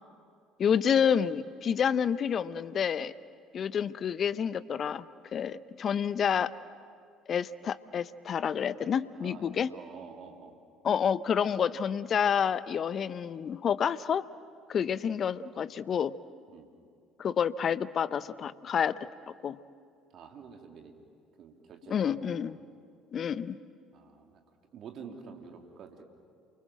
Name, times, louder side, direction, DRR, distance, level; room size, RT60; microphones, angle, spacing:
voice 1, 0.6-3.1 3.5-5.0 5.3-6.5 7.3-9.7 10.8-14.3 14.7-16.2 17.2-19.0 19.4-19.6 21.9-22.6 23.1-23.6, left 7 dB, 45° left, 16 dB, 0.8 m, -29 dB
voice 2, 9.1-10.5 16.5-16.7 20.1-20.9 21.4-22.4 23.9-24.4 24.7-26.0, right 6 dB, 50° right, 3 dB, 3.3 m, -48 dB
29.0 x 24.0 x 7.7 m, 2.3 s
figure-of-eight pair, 55°, 0 cm